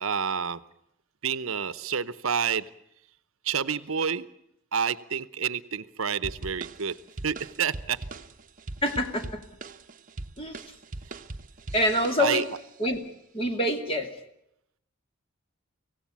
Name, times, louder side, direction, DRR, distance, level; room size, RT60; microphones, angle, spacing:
voice 1, 0.0-0.6 1.2-2.7 3.4-4.3 4.7-7.0 7.2-8.0 11.1-11.2 12.2-12.4, right 7 dB, 70° right, 16 dB, 0.8 m, -29 dB
sound 1, 6.2-12.7, right 2 dB, 40° right, 0.9 m, -41 dB
voice 2, 8.8-9.4 10.4-10.6 11.7-12.4 12.8-13.0 13.3-14.1, left 1 dB, 25° left, 5 dB, 2.8 m, -26 dB
25.0 x 17.0 x 8.5 m, 0.78 s
head